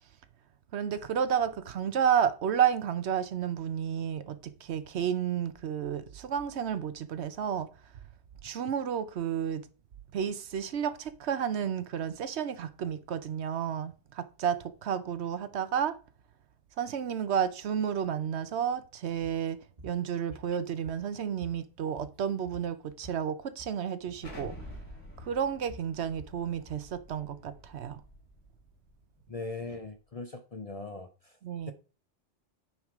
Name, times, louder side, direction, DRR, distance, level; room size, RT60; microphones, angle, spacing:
voice 1, 0.7-7.7 8.4-9.7 10.1-16.0 16.8-24.5 25.2-28.0 31.4-31.7, right 8 dB, 65° right, 0.9 m, -31 dB
sound 1, 19.8-20.0 20.3-21.1 21.4-23.2 23.5-23.8 24.1-24.3 24.7-24.9 25.2-26.9, right 1 dB, 35° right, 1.4 m, -50 dB
Explosion, 24.2-28.9, left 1 dB, 80° left, 2.8 m, -49 dB
voice 2, 29.3-31.4 31.7-31.8, left 3 dB, 40° left, 0.6 m, -40 dB
9.5 x 4.7 x 3.6 m
omnidirectional pair, 1.2 m